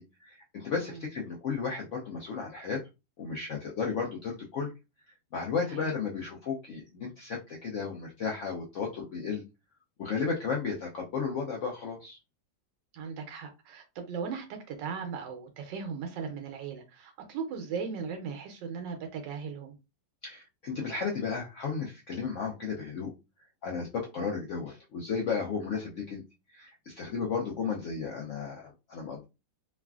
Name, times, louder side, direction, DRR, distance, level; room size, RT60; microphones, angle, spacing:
voice 1, 0.0-2.8 3.2-4.7 5.3-9.4 10.0-12.2 20.2-23.1 23.6-26.2 26.5-29.2, left 5 dB, 75° left, 0.7 m, -34 dB
voice 2, 12.9-19.7, right 6 dB, 85° right, 1.3 m, -37 dB
3.1 x 2.4 x 2.3 m
omnidirectional pair, 1.9 m